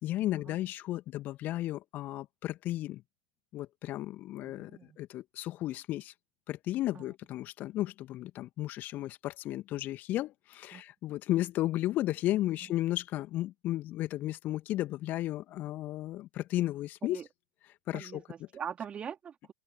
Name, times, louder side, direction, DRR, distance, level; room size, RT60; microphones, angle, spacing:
voice 1, 0.0-3.0 3.5-4.7 5.0-6.1 6.5-17.2 17.6-18.5, left 15 dB, 35° left, 2.1 m, -34 dB
voice 2, 4.4-5.0 6.9-7.1 10.7-10.8 17.0-17.3 17.9-19.5, right 8 dB, 20° right, 3.6 m, -42 dB
open air
figure-of-eight pair, 95°, 5 cm